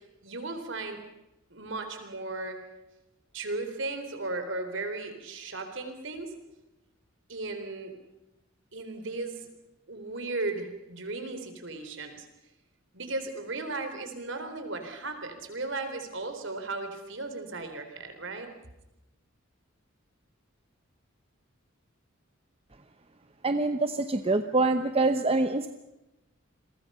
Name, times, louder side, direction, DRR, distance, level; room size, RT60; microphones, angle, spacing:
voice 1, 0.2-1.0 1.5-2.6 3.3-6.3 7.3-7.9 8.7-9.5 9.9-12.3 12.9-18.5, right 3 dB, 60° right, 7 dB, 4.0 m, -36 dB
voice 2, 23.4-25.7, right 2 dB, 30° right, 8 dB, 0.8 m, -25 dB
29.0 x 22.5 x 5.7 m, 0.96 s
head